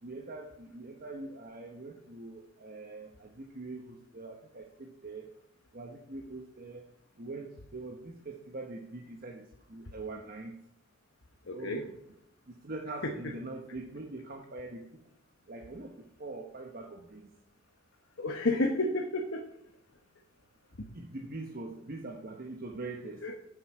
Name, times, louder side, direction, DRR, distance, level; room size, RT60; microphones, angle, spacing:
voice 1, 0.0-5.3 5.7-6.8 7.2-10.5 11.5-12.0 12.5-15.0 15.5-17.3 20.9-23.4, right 2 dB, 50° right, 2 dB, 1.0 m, -43 dB
voice 2, 11.5-11.8 13.0-13.1 18.2-19.4 20.8-20.9 23.2-23.4, left 2 dB, 90° left, 3 dB, 1.1 m, -30 dB
9.2 x 8.0 x 4.7 m, 0.82 s
head